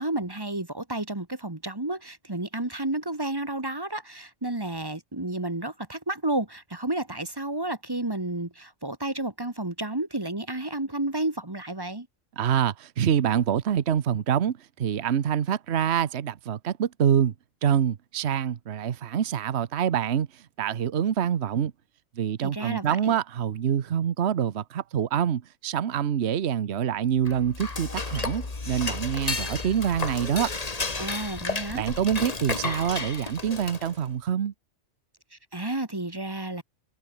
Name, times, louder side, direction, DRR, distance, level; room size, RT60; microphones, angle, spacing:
voice 1, 0.0-12.1 22.4-23.1 31.0-31.8 35.5-36.6, right 2 dB, 20° right, 1.5 m, -31 dB
voice 2, 12.4-17.3 17.6-21.7 22.2-30.5 31.7-34.5, right 9 dB, 60° right, 1.2 m, -26 dB
Dishes pots and pans / Cutlery silverware, 27.2-34.1, left 3 dB, 30° left, 1.7 m, -32 dB
omnidirectional pair, 1.3 m